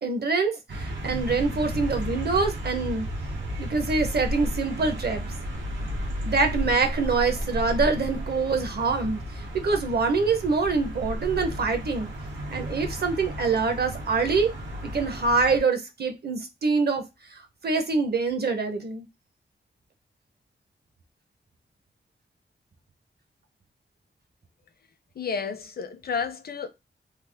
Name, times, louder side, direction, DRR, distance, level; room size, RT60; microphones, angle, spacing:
voice 1, 0.0-3.0 3.5-5.2 6.2-12.1 12.5-14.5 14.8-19.1, right 4 dB, 60° right, 0.8 m, -25 dB
sound 1, 0.7-15.6, equal, 90° right, 0.9 m, -33 dB
voice 2, 25.2-26.7, left 6 dB, 55° left, 0.6 m, -31 dB
3.3 x 2.0 x 3.3 m
wide cardioid pair, 115°, 19 cm